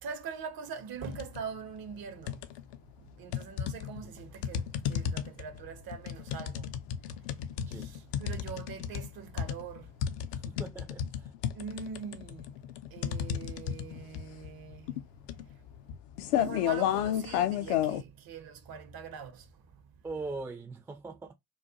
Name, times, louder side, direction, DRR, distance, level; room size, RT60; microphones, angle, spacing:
voice 1, 0.0-2.4 3.0-6.7 7.7-9.9 11.5-12.5 12.9-14.9 16.3-19.5, right 6 dB, 45° right, 0.6 m, -43 dB
sound 1, 1.1-1.4 1.8-2.8 3.3-18.0, left 10 dB, 60° left, 0.5 m, -32 dB
voice 2, 10.3-11.3 20.0-21.3, right 3 dB, 5° right, 0.4 m, -41 dB
2.3 x 2.2 x 2.6 m
figure-of-eight pair, 40°, 50 cm